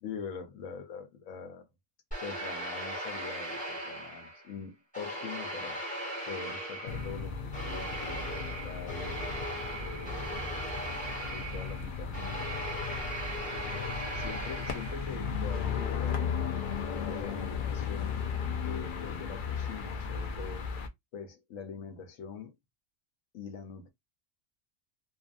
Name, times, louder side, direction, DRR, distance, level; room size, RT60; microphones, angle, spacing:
voice 1, 0.0-1.7 2.2-5.9 6.2-9.3 9.8-10.4 11.3-12.8 13.5-16.3 17.1-18.2 18.6-20.7 21.1-22.5 23.3-23.9, left 5 dB, 85° left, 1.1 m, -43 dB
sound 1, 2.1-4.5 4.9-15.3, right 1 dB, 5° left, 0.9 m, -38 dB
sound 2, 6.9-20.9, left 6 dB, 55° left, 0.6 m, -35 dB
2.5 x 2.3 x 2.4 m
omnidirectional pair, 1.3 m